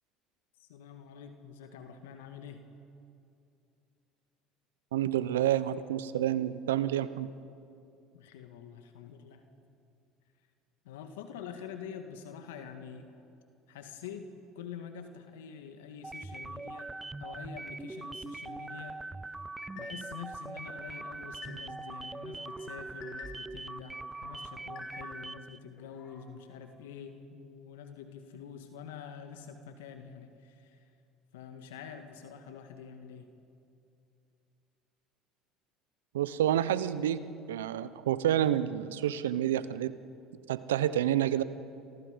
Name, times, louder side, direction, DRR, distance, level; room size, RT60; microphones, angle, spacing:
voice 1, 0.6-2.6 8.1-9.4 10.9-13.1 13.7-16.9 17.2-19.0 19.7-30.8 31.3-33.3, left 7 dB, 80° left, 7 dB, 1.7 m, -46 dB
voice 2, 4.9-7.3 36.1-39.9 40.5-41.4, right 11 dB, 85° right, 15 dB, 0.8 m, -29 dB
sound 1, 16.0-25.6, right 2 dB, 15° right, 0.6 m, -42 dB
sound 2, 19.6-20.2 20.7-21.9 22.3-23.6 24.0-25.4 25.8-26.3, left 6 dB, 60° left, 5.7 m, -51 dB
28.5 x 26.0 x 5.2 m, 2.6 s
hypercardioid pair, 75°, 0 cm